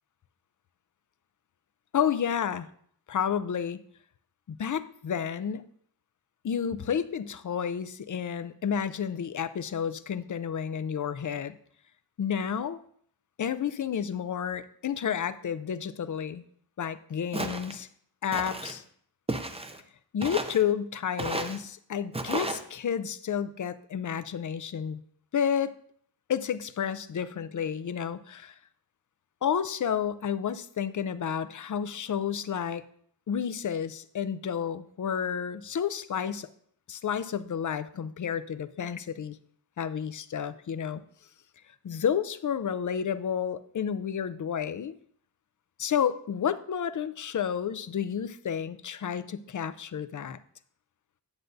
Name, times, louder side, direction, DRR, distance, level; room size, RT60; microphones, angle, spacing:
voice 1, 1.9-2.7 3.1-3.8 4.5-5.6 6.4-11.6 12.2-12.8 13.4-16.4 16.8-17.9 18.2-18.8 20.1-25.0 25.3-25.7 26.3-28.5 29.4-32.8 33.3-36.5 36.9-39.4 39.8-41.0 41.8-44.9 45.8-50.4, left 8 dB, 45° left, 14 dB, 0.4 m, -31 dB
Walk footsteps, 17.3-17.8 18.3-18.8 19.3-19.8 20.2-20.6 21.2-21.6 22.1-22.6, right 2 dB, 15° right, 0.5 m, -33 dB
9.8 x 7.8 x 2.6 m, 0.62 s
wide cardioid pair, 105°, 42 cm